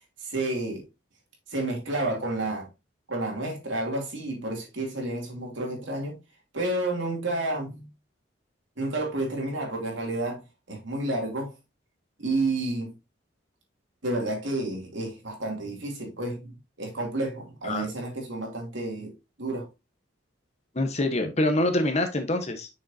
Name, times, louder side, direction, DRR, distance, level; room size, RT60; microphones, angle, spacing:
voice 1, 0.2-0.8 1.5-2.7 3.1-6.2 6.5-7.9 8.8-10.4 10.7-11.5 12.2-12.9 14.0-19.1 19.4-19.7, right 2 dB, 70° right, 2.7 m, -30 dB
voice 2, 20.7-22.7, left 1 dB, 35° left, 1.0 m, -25 dB
6.5 x 6.2 x 2.7 m
head